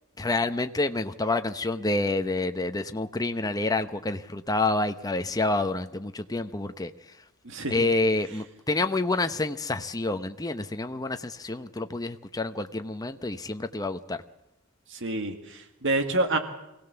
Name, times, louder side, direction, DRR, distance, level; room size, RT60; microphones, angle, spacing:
voice 1, 0.2-6.9 7.7-14.2, left 2 dB, 15° left, 8 dB, 0.8 m, -28 dB
voice 2, 7.4-7.9 14.9-16.4, right 2 dB, 60° right, 7 dB, 2.0 m, -28 dB
25.0 x 17.5 x 7.0 m, 0.92 s
head